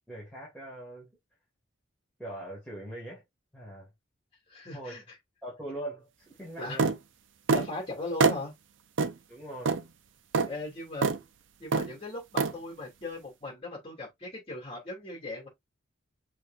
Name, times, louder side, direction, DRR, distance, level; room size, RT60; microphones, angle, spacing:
voice 1, 0.1-1.2 2.2-3.2 3.5-3.9 4.7-5.0 5.4-7.0 9.3-9.8, right 1 dB, 5° left, 2.0 m, -41 dB
voice 2, 4.5-5.0 6.6-6.8 7.5-8.5 10.5-11.1 11.6-15.5, left 2 dB, 30° left, 2.8 m, -38 dB
sound 1, 6.8-7.0 7.5-7.7 8.2-8.4 9.0-9.1 9.7-9.8 10.3-10.5 11.0-11.2 11.7-11.9 12.4-12.5, right 4 dB, 70° right, 0.6 m, -24 dB
6.2 x 3.4 x 2.5 m
head